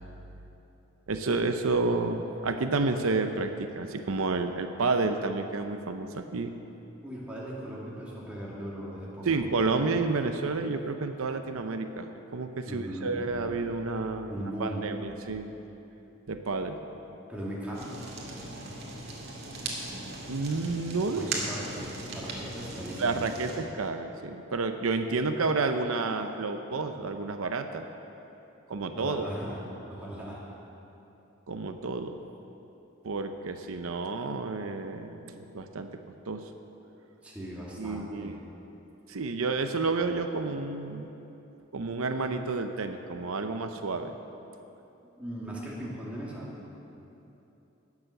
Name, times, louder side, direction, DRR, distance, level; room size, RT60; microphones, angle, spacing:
voice 1, 1.1-6.5 9.2-14.3 14.6-15.5 16.3-16.8 20.3-21.4 23.0-27.8 28.7-29.3 31.5-32.2 33.0-35.9 36.3-36.4 37.8-38.5 39.1-41.1 41.7-44.1, right 3 dB, 85° right, 7 dB, 0.7 m, -30 dB
voice 2, 7.0-9.5 12.6-13.1 14.3-14.8 17.3-18.7 21.1-23.2 28.8-29.6 29.9-30.4 37.2-38.3 45.1-46.5, right 1 dB, 5° right, -7 dB, 2.5 m, -38 dB
Fire, 17.7-23.6, right 2 dB, 50° right, 2.1 m, -38 dB
17.5 x 7.3 x 6.6 m, 3.0 s
head